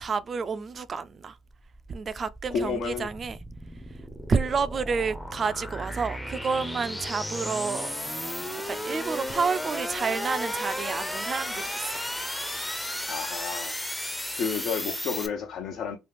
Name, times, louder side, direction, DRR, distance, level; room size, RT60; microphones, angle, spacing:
voice 1, 0.0-1.4 1.9-3.4 4.3-7.9 8.7-12.0, right 5 dB, 40° right, 0.4 m, -29 dB
sound 1, 1.5-15.3, left 1 dB, 5° left, 0.6 m, -34 dB
voice 2, 2.5-3.1 13.1-13.8 14.3-16.0, left 6 dB, 65° left, 0.7 m, -31 dB
3.1 x 2.4 x 3.3 m
supercardioid pair, 75°, 0 cm